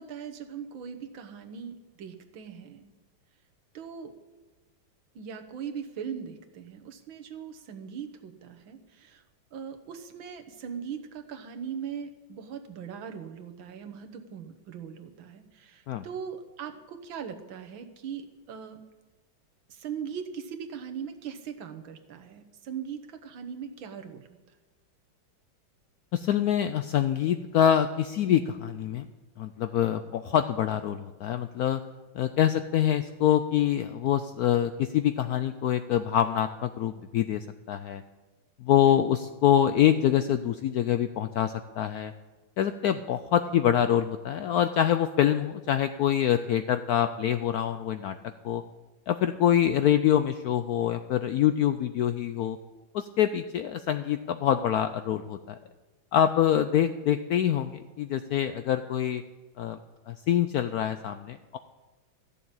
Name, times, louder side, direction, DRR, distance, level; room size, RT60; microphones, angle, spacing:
voice 1, 0.0-2.8 3.7-4.1 5.2-9.2 9.5-18.8 19.7-24.3, right 7 dB, 80° right, 6 dB, 1.9 m, -40 dB
voice 2, 26.1-29.1 29.4-31.8 32.1-38.0 38.6-42.1 42.6-48.2 48.4-48.6 49.1-52.6 52.9-55.6 56.1-59.2 59.6-59.8 60.1-61.6, left 10 dB, 80° left, 10 dB, 0.8 m, -25 dB
14.0 x 7.0 x 8.6 m, 1.2 s
omnidirectional pair, 2.1 m